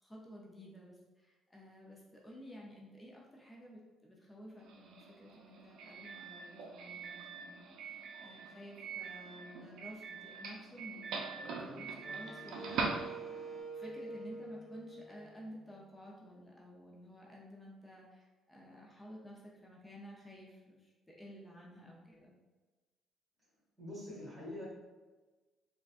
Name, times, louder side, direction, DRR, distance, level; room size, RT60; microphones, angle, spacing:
voice 1, 0.0-13.1 13.7-22.3, equal, 15° left, -3 dB, 0.6 m, -53 dB
Doorbell, 4.6-13.6, right 4 dB, 80° right, 0.4 m, -43 dB
Wind instrument woodwind instrument, 11.6-15.8, right 3 dB, 20° right, 0.9 m, -47 dB
voice 2, 23.8-24.7, left 1 dB, 35° right, -7 dB, 1.5 m, -44 dB
3.8 x 2.2 x 2.5 m, 1.2 s
cardioid pair, 90°, 0 cm